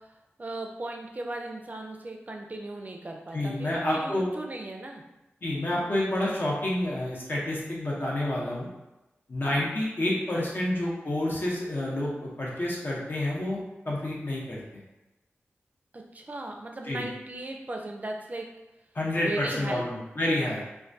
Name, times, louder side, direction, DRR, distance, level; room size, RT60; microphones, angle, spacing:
voice 1, 0.4-5.0 10.3-10.7 15.9-18.5 19.2-19.9, right 2 dB, 35° right, 2 dB, 0.4 m, -37 dB
voice 2, 3.3-4.3 5.4-8.7 9.3-14.8 16.8-17.0 18.9-20.6, left 1 dB, 50° left, -5 dB, 0.7 m, -29 dB
2.2 x 2.2 x 2.5 m, 1.0 s
wide cardioid pair, 60°, 5 cm